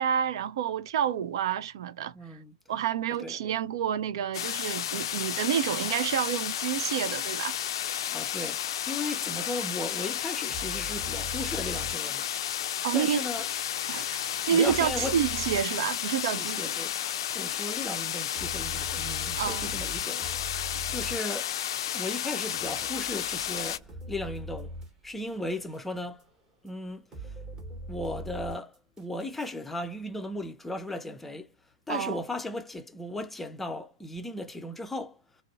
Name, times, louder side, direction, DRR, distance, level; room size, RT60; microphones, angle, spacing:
voice 1, 0.0-2.4 2.7-7.6 12.8-13.2 13.9-16.6 19.4-19.7 31.9-32.2, right 9 dB, 60° right, 0.3 m, -29 dB
voice 2, 2.1-2.6 3.2-3.4 8.1-12.3 12.9-13.5 14.5-15.2 16.2-17.0 17.3-20.3 20.9-21.6 21.8-24.8 25.0-26.2 26.6-27.4 27.9-31.5 31.9-35.2, left 1 dB, 5° left, 0.5 m, -36 dB
sound 1, 4.3-23.8, left 10 dB, 65° left, 0.3 m, -32 dB
sound 2, 10.5-12.9 13.3-16.6 17.4-17.5 17.9-25.3 25.7-26.2 26.7-26.8 27.1-29.5, right 1 dB, 20° right, 1.0 m, -42 dB
2.5 x 2.0 x 2.6 m
hypercardioid pair, 120°, 3 cm